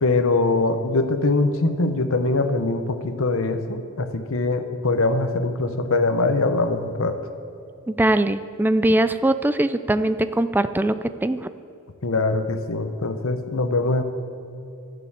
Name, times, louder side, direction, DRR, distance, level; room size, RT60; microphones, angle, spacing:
voice 1, 0.0-7.2 12.0-14.0, left 2 dB, 65° left, 8 dB, 0.9 m, -22 dB
voice 2, 7.9-11.5, right 1 dB, 10° right, 11 dB, 0.3 m, -21 dB
12.0 x 6.9 x 8.7 m, 2.7 s
head